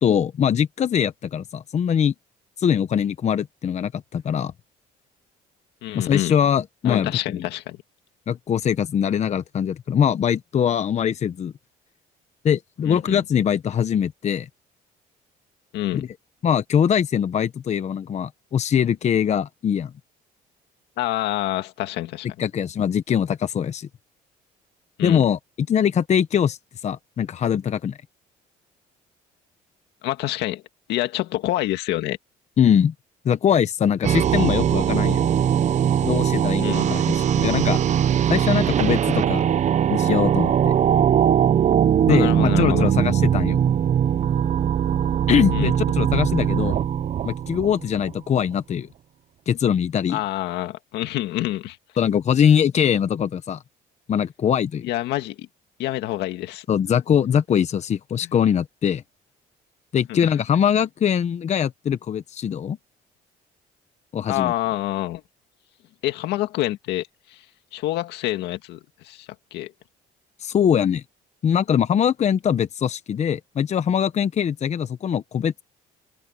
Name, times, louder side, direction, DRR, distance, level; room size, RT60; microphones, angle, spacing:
voice 1, 0.0-2.1 2.6-4.5 5.9-7.5 8.3-11.5 12.4-14.5 15.9-16.1 16.4-19.9 22.4-23.9 25.0-25.4 25.7-26.6 26.8-28.0 32.6-32.9 33.2-35.2 36.0-37.8 38.3-39.5 39.9-40.7 42.1-43.6 45.3-46.8 47.2-48.9 49.5-50.2 52.0-53.6 54.1-54.9 56.7-59.0 59.9-62.8 64.1-64.5 70.4-71.0 71.4-75.6, left 8 dB, 40° left, 1.0 m, -22 dB
voice 2, 5.8-6.4 6.8-7.8 12.8-13.2 15.7-16.1 21.0-22.3 25.0-25.2 30.0-30.6 30.9-32.2 36.6-36.9 42.1-42.9 45.5-45.7 50.1-51.8 54.8-55.5 55.8-56.7 58.2-58.3 60.1-60.3 64.3-65.2 66.0-67.4 67.7-69.7, left 15 dB, 85° left, 2.0 m, -27 dB
sound 1, 34.0-48.1, right 9 dB, 45° right, 0.8 m, -20 dB
open air
cardioid pair, 110°, 17 cm